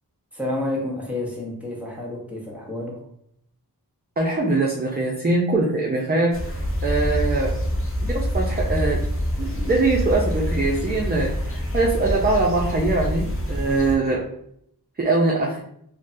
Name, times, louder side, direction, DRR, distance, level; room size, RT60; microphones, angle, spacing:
voice 1, 0.3-3.1, left 1 dB, 5° right, -3 dB, 0.9 m, -29 dB
voice 2, 4.2-6.4 6.8-7.6 8.0-9.0 9.4-14.2 15.0-15.6, right 2 dB, 25° right, -2 dB, 0.4 m, -22 dB
sound 1, 6.3-13.9, equal, 35° left, 0.7 m, -26 dB
3.2 x 2.1 x 2.6 m, 0.70 s
wide cardioid pair, 55°, 40 cm